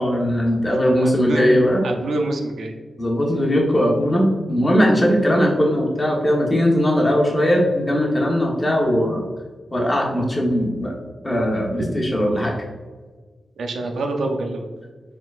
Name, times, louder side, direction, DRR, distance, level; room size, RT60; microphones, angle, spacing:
voice 1, 0.0-1.8 3.0-9.2 9.7-10.9 11.2-12.5, equal, 25° left, -1 dB, 1.1 m, -19 dB
voice 2, 1.0-1.4 1.8-2.7 13.6-14.7, right 2 dB, 90° right, 3 dB, 0.5 m, -26 dB
4.6 x 3.7 x 2.5 m, 1.4 s
cardioid pair, 70°, 0 cm